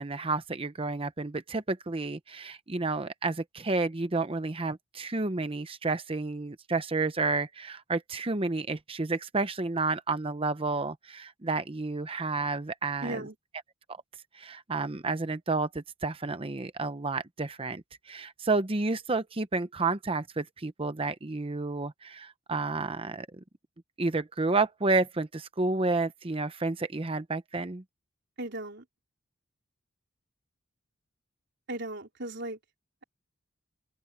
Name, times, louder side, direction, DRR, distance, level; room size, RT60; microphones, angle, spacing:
voice 1, 0.0-13.3 14.3-23.3 24.0-27.8, right 3 dB, 25° right, 0.8 m, -30 dB
voice 2, 13.0-13.3 28.4-28.8 31.7-32.6, right 1 dB, 55° right, 4.2 m, -36 dB
head